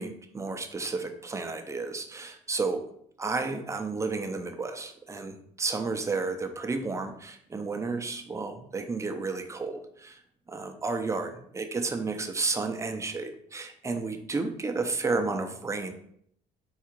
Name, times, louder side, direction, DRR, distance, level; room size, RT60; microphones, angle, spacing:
voice 1, 0.0-2.9 3.2-10.2 10.5-15.9, right 3 dB, 15° right, 5 dB, 0.5 m, -32 dB
4.7 x 2.4 x 4.5 m, 0.68 s
cardioid pair, 110°, 17 cm